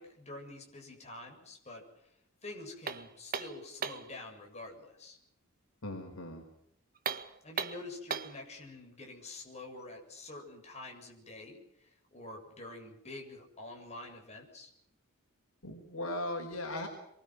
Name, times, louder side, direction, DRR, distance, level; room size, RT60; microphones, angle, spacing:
voice 1, 0.0-2.1 2.4-5.2 7.4-14.7, left 2 dB, 30° left, 1 dB, 7.3 m, -47 dB
sound 1, 2.9-4.1 6.9-8.4, right 6 dB, 45° right, 1.6 m, -37 dB
voice 2, 5.8-6.4 15.6-16.9, left 1 dB, 75° left, 2 dB, 5.1 m, -38 dB
28.0 x 23.5 x 6.3 m, 0.77 s
head